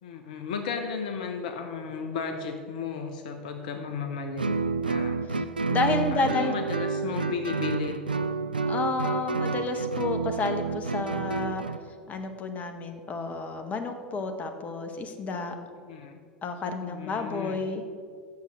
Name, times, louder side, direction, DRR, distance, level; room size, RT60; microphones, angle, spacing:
voice 1, 0.0-4.5 4.8-5.2 6.1-8.0 15.8-16.2 16.8-17.6, left 6 dB, 60° left, 5 dB, 0.8 m, -34 dB
Guitar, 4.4-11.8, right 4 dB, 85° right, 0.3 m, -29 dB
voice 2, 5.7-6.5 8.7-11.6 12.1-15.5 16.4-17.9, left 3 dB, 30° left, 6 dB, 1.1 m, -30 dB
8.2 x 6.5 x 6.6 m, 2.1 s
figure-of-eight pair, 80°, 5 cm